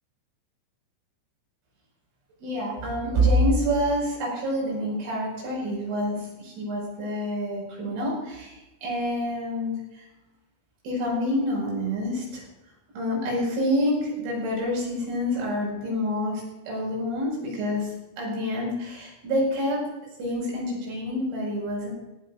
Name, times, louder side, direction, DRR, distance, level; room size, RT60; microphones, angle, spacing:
voice 1, 2.4-10.1 10.8-12.4 12.9-19.8 20.2-21.9, equal, 80° right, -3 dB, 8.0 m, -27 dB
18.5 x 16.0 x 2.5 m, 1.0 s
omnidirectional pair, 5.9 m